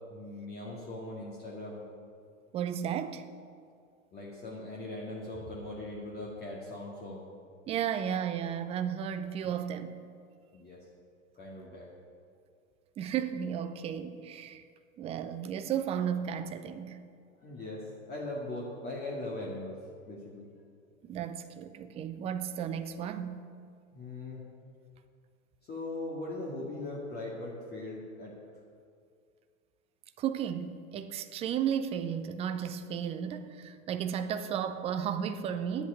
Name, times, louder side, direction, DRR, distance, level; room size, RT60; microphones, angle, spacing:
voice 1, 0.1-1.8 4.1-7.2 10.5-10.9 11.4-11.9 17.4-19.8 20.1-20.5 23.9-24.4 25.7-28.3, left 2 dB, 25° left, 2.1 m, -40 dB
voice 2, 2.5-3.2 7.7-10.0 13.0-14.6 15.0-17.0 21.0-23.4 30.2-35.9, right 8 dB, 15° right, 0.5 m, -34 dB
10.5 x 8.1 x 8.1 m
hypercardioid pair, 110°, 42 cm